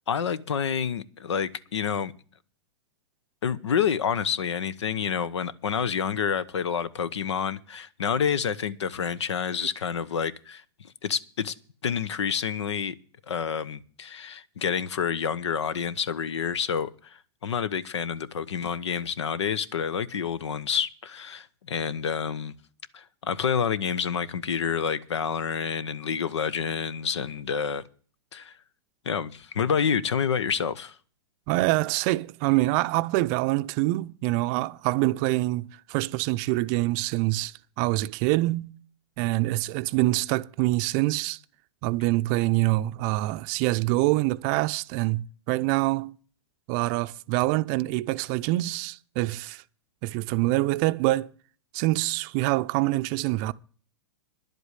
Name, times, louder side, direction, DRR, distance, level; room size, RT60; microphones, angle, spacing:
voice 1, 0.1-2.1 3.4-11.5 11.8-13.0 13.3-22.5 22.9-27.8 28.3-28.5 29.0-30.9, left 7 dB, 85° left, 0.9 m, -28 dB
voice 2, 31.5-38.7 39.2-41.4 41.8-46.1 46.7-49.6 50.0-51.3 51.7-53.5, right 19 dB, 40° right, 0.5 m, -25 dB
11.0 x 8.0 x 8.1 m
hypercardioid pair, 130°, 14 cm